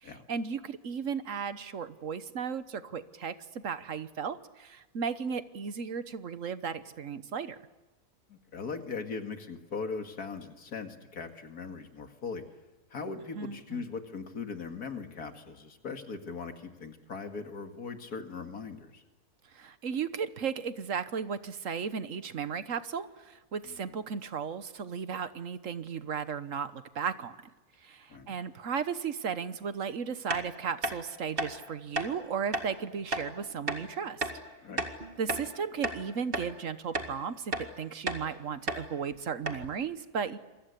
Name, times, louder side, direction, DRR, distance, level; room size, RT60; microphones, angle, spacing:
voice 1, 0.0-3.3 3.6-7.6 13.3-13.8 19.5-27.4 27.8-34.3 35.2-40.4, right 6 dB, 60° right, 12 dB, 1.5 m, -35 dB
voice 2, 8.3-12.4 12.9-19.0 23.7-24.0 28.1-28.4 34.6-34.9, left 5 dB, 90° left, 6 dB, 2.6 m, -39 dB
sound 1, 30.3-30.4 30.8-31.0 31.4-31.5 32.0-32.1 32.5-32.7 33.1-33.3 33.7-33.8 34.2-34.4 34.8-35.5 35.8-36.0 36.3-36.5 36.9-37.1 37.5-37.7 38.1-38.2 38.7-38.8 39.1-39.2 39.5-39.7, right 2 dB, 40° right, 2.2 m, -32 dB
27.5 x 23.5 x 8.4 m, 1.1 s
omnidirectional pair, 1.6 m